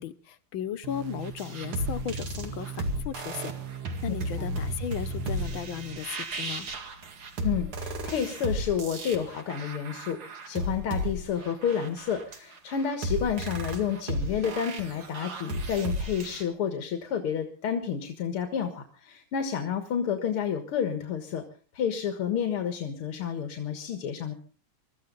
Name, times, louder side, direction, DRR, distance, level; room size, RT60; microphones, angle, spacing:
voice 1, 0.0-3.5 4.0-6.7, left 10 dB, 70° left, 12 dB, 1.8 m, -36 dB
sound 1, 0.8-6.0, right 10 dB, 55° right, 1.5 m, -40 dB
sound 2, 1.2-16.4, right 1 dB, 80° right, 3.1 m, -34 dB
voice 2, 7.4-21.4 21.7-24.3, left 8 dB, 85° left, 6 dB, 2.5 m, -30 dB
23.0 x 14.0 x 4.0 m, 0.39 s
omnidirectional pair, 2.3 m